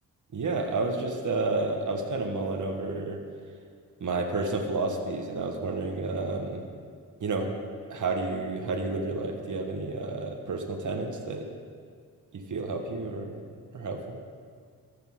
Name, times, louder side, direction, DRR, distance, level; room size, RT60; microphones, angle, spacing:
voice 1, 0.3-3.2 4.0-6.7 7.2-7.5 7.9-11.5 12.3-13.4 13.7-14.2, right 3 dB, 45° right, 3 dB, 1.3 m, -30 dB
14.0 x 6.7 x 3.7 m, 2.1 s
supercardioid pair, 50°, 41 cm